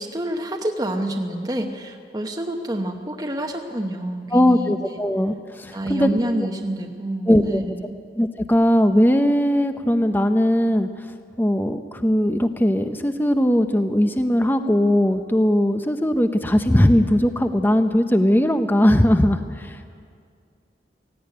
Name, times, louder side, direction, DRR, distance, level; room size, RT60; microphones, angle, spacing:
voice 1, 0.0-4.8 5.7-8.0, right 1 dB, 20° right, 2 dB, 0.9 m, -28 dB
voice 2, 4.3-6.1 7.3-7.6 8.2-11.1 11.4-19.9, equal, 10° left, 8 dB, 0.6 m, -19 dB
17.0 x 16.0 x 9.8 m, 2.2 s
head